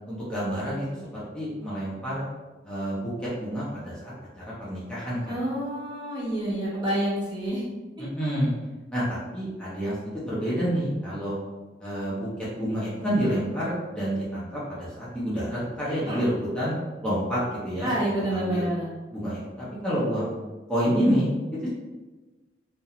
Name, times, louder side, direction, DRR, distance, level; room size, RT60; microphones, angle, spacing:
voice 1, 0.1-0.8 1.1-2.2 2.6-5.4 8.0-8.5 8.9-11.4 11.8-12.3 12.6-16.7 17.0-17.9 18.3-18.7 19.1-20.3 20.7-21.3 21.6-21.7, equal, 5° left, -10 dB, 0.5 m, -28 dB
voice 2, 5.3-7.6 16.1-16.2 17.8-18.9, right 1 dB, 25° right, -7 dB, 0.7 m, -28 dB
2.4 x 2.1 x 2.8 m, 1.2 s
head